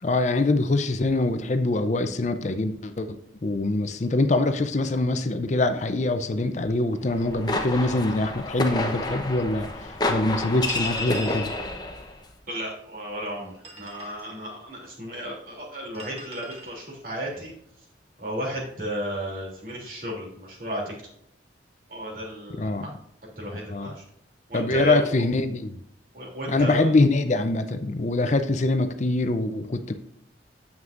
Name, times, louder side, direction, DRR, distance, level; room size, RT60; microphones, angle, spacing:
voice 1, 0.0-11.5 22.6-22.8 23.7-23.9 24.5-25.8 26.5-29.9, left 2 dB, 40° left, 9 dB, 0.5 m, -24 dB
sound 1, 7.1-12.1, left 2 dB, 20° left, 0.9 m, -29 dB
sound 2, 10.6-11.5 13.4-14.3 15.9-16.8, right 2 dB, 30° right, 1.8 m, -43 dB
voice 2, 12.5-17.5 18.2-20.9 21.9-22.9 23.2-24.0 24.5-25.2 26.1-26.8, equal, 50° right, -2 dB, 2.9 m, -34 dB
9.5 x 7.4 x 2.5 m, 0.72 s
head